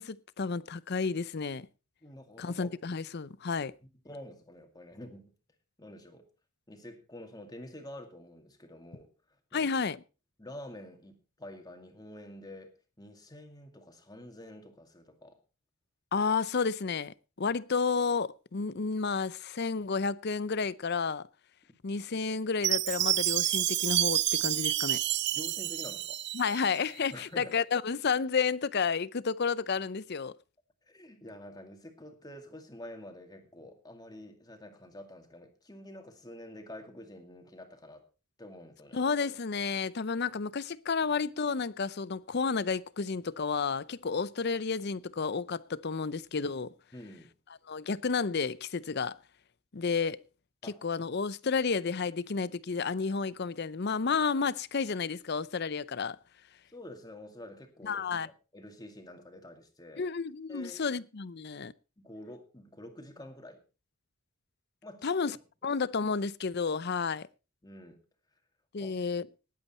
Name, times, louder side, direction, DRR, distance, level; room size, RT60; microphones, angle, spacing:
voice 1, 0.0-1.7 2.4-3.7 9.5-10.0 16.1-21.2 21.8-25.0 26.3-30.3 38.9-46.7 47.7-49.2 49.7-50.2 50.8-56.2 57.8-58.3 60.0-61.7 65.0-65.4 65.6-67.3 68.7-69.3, left 5 dB, 50° left, 0.6 m, -31 dB
voice 2, 2.0-2.7 4.0-5.3 5.8-6.3 6.7-9.7 10.4-15.4 25.3-26.2 27.1-27.6 30.8-38.0 38.4-39.0 46.9-47.3 50.6-50.8 56.7-60.1 60.5-60.8 62.0-63.6 64.8-65.3 67.6-68.0 68.8-69.0, left 1 dB, 20° left, 2.3 m, -48 dB
Chime, 22.6-26.8, right 14 dB, 55° right, 0.6 m, -29 dB
19.0 x 8.5 x 4.3 m
head